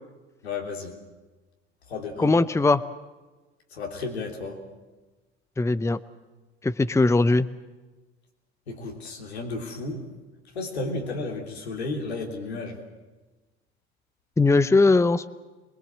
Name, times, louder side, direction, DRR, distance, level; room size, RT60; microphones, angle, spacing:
voice 1, 0.4-0.9 1.9-2.4 3.7-4.6 8.7-10.0 10.5-12.8, left 3 dB, 85° left, 1 dB, 3.3 m, -33 dB
voice 2, 2.2-2.8 5.6-6.0 6.6-7.5 14.4-15.3, left 3 dB, 10° left, 14 dB, 0.8 m, -20 dB
25.0 x 21.5 x 7.5 m, 1.2 s
hypercardioid pair, 65°, 31 cm